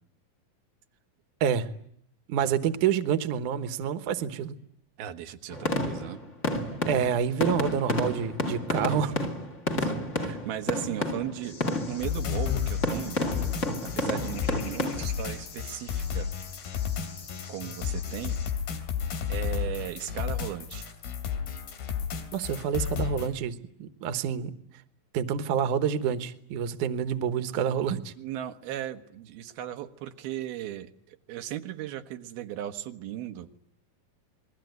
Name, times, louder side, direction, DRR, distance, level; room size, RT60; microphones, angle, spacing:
voice 1, 2.3-4.6 6.9-9.3 22.3-24.5 25.1-28.1, right 8 dB, 65° right, 10 dB, 2.6 m, -28 dB
voice 2, 5.0-6.2 6.6-6.7 9.8-11.6 11.9-13.2 13.8-16.3 17.5-18.4 19.3-20.9 28.2-33.6, right 12 dB, 85° right, 7 dB, 3.2 m, -37 dB
sound 1, 5.5-12.1 12.8-15.1, left 1 dB, 20° left, 2.4 m, -30 dB
sound 2, 11.4-18.5, left 5 dB, 50° left, 4.3 m, -48 dB
sound 3, 12.0-23.3, left 8 dB, 90° left, 4.5 m, -32 dB
28.5 x 22.0 x 9.4 m, 0.68 s
omnidirectional pair, 4.2 m